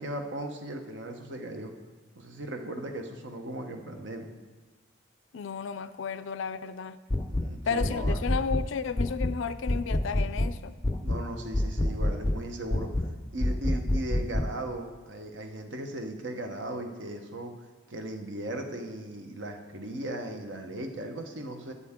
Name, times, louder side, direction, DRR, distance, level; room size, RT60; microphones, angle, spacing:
voice 1, 0.0-1.7 2.1-4.3 7.3-8.2 11.0-13.1 13.3-17.5 17.9-21.7, right 1 dB, 65° right, 4 dB, 1.0 m, -37 dB
voice 2, 5.3-7.0 7.6-10.8, left 6 dB, 70° left, 12 dB, 0.4 m, -33 dB
sound 1, 7.1-7.5 7.8-8.7 9.0-9.4 9.7-10.5 10.8-11.2 11.5-12.4 12.7-13.1 13.4-14.5, left 1 dB, 15° left, 0.4 m, -27 dB
12.5 x 8.6 x 3.7 m, 1.3 s
head